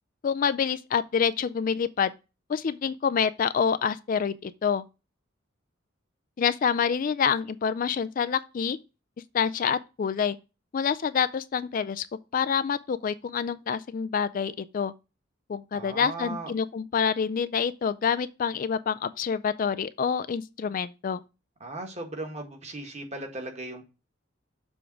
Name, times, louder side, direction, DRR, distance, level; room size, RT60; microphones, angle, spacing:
voice 1, 0.2-2.1 2.5-4.8 6.4-8.8 9.3-10.4 10.7-12.1 12.3-14.9 15.5-21.2, left 7 dB, 40° left, 0.3 m, -27 dB
voice 2, 15.7-16.5 21.6-23.9, right 2 dB, 35° right, 1.7 m, -37 dB
7.1 x 3.6 x 5.9 m
head